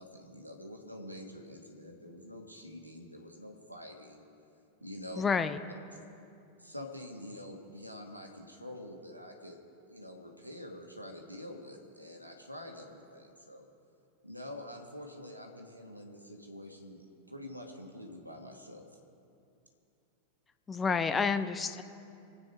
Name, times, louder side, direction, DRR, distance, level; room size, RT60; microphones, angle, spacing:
voice 1, 0.0-4.2 4.8-5.2 6.6-9.6 9.9-13.7 14.2-18.8, left 1 dB, 90° right, 2 dB, 1.9 m, -46 dB
voice 2, 5.2-5.6 20.7-21.8, left 5 dB, 15° left, 10 dB, 0.7 m, -29 dB
25.0 x 9.0 x 4.7 m, 2.6 s
figure-of-eight pair, 90°, 0 cm